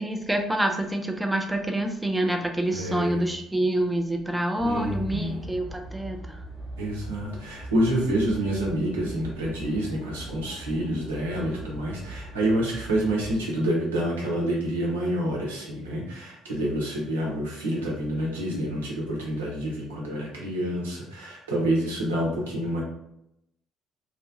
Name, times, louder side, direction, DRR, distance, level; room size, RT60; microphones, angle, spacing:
voice 1, 0.0-6.4, right 1 dB, 10° right, 3 dB, 0.4 m, -27 dB
voice 2, 2.7-3.3 4.6-5.4 6.8-22.8, right 1 dB, 80° right, -3 dB, 0.7 m, -28 dB
sound 1, 4.6-13.4, right 1 dB, 30° left, 1.0 m, -41 dB
2.9 x 2.2 x 2.6 m, 0.80 s
figure-of-eight pair, 50°, 0 cm